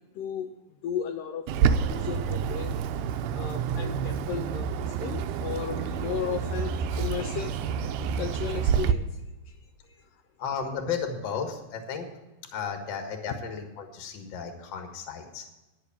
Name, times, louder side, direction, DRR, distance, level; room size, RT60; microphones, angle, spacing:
voice 1, 0.2-2.8 3.3-9.2 9.5-9.6 9.9-10.0, left 8 dB, 80° left, 6 dB, 2.0 m, -35 dB
Bird, 1.5-8.9, right 7 dB, 80° right, 1.8 m, -28 dB
voice 2, 10.4-12.1 12.5-15.4, left 6 dB, 50° left, 4 dB, 1.4 m, -34 dB
11.5 x 7.1 x 7.1 m, 1.1 s
omnidirectional pair, 4.3 m